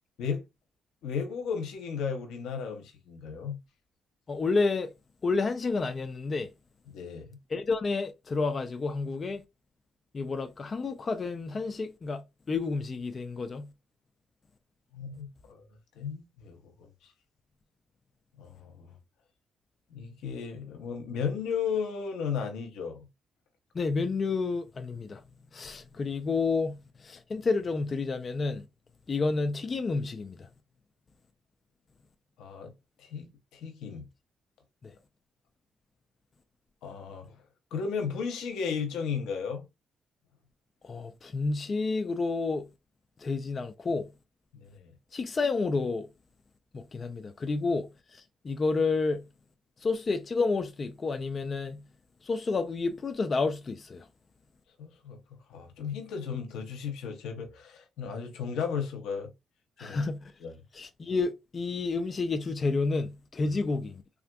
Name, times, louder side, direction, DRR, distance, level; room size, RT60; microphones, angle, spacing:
voice 1, 1.0-3.6 6.9-7.4 14.9-15.6 16.0-16.7 17.0-17.1 18.4-18.9 19.9-23.1 32.4-32.7 33.0-34.0 36.8-37.3 37.7-39.6 44.6-44.9 54.8-55.2 55.5-59.3 59.8-60.0 60.4-60.5 63.4-63.5, left 6 dB, 85° left, 0.7 m, -35 dB
voice 2, 4.3-4.9 5.2-6.5 7.5-9.4 10.1-13.7 23.7-25.2 25.5-28.7 29.1-30.5 34.8-35.0 40.8-42.7 43.2-44.1 45.1-46.1 46.7-49.2 49.8-51.8 52.2-54.1 59.8-60.3 60.7-64.0, left 3 dB, 40° left, 0.4 m, -30 dB
3.4 x 2.4 x 2.2 m
cardioid pair, 90°, 0 cm